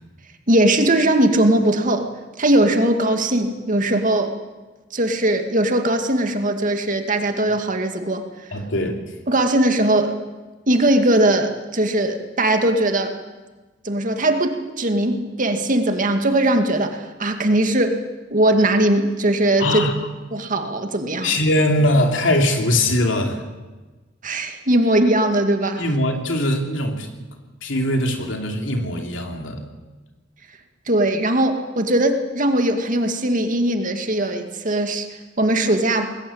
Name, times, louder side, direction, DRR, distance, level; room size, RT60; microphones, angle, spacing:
voice 1, 0.5-2.1 2.4-4.4 4.9-8.2 9.3-10.2 10.7-13.1 13.8-18.1 18.3-19.8 20.3-21.4 24.2-25.8 30.9-36.1, right 1 dB, 45° right, 6 dB, 2.2 m, -20 dB
voice 2, 8.5-9.0 19.6-19.9 21.2-23.5 25.8-27.1 27.6-29.6, left 1 dB, 85° left, 3 dB, 3.0 m, -21 dB
21.0 x 18.5 x 8.7 m, 1.2 s
head